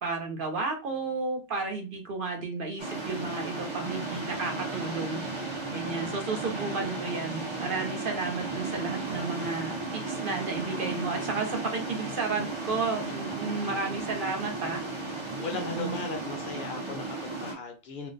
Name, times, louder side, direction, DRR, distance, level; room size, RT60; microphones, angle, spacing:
voice 1, 0.0-5.2 5.7-15.0 15.5-16.0, right 4 dB, 55° right, 0.9 m, -33 dB
sound 1, 2.8-17.5, right 3 dB, 30° right, 0.7 m, -35 dB
voice 2, 15.4-18.1, left 4 dB, 60° left, 0.8 m, -37 dB
2.5 x 2.1 x 3.8 m
omnidirectional pair, 1.1 m